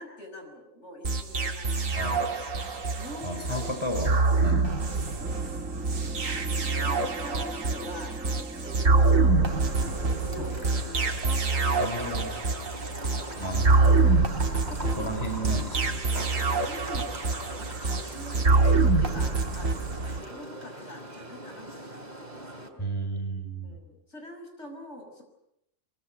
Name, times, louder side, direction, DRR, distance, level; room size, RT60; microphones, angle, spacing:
voice 1, 0.0-2.4 2.9-3.7 4.6-5.7 6.3-6.4 6.7-8.1 8.6-11.1 11.5-12.5 12.9-14.0 14.6-15.1 16.6-22.9 23.6-25.2, left 1 dB, 60° left, 4 dB, 6.1 m, -44 dB
sound 1, 1.0-20.2, right 3 dB, 80° right, 2.4 m, -25 dB
voice 2, 1.9-2.2 3.2-4.1 4.4-4.6 10.4-10.5 11.8-12.3 13.3-13.9 14.8-16.0 22.8-23.8, right 1 dB, 20° left, 5 dB, 5.2 m, -33 dB
sound 2, 5.2-10.9, right 2 dB, 5° right, 1.5 m, -42 dB
sound 3, 9.5-22.7, right 1 dB, 30° right, 3.6 m, -42 dB
24.5 x 24.0 x 9.1 m, 0.81 s
omnidirectional pair, 1.4 m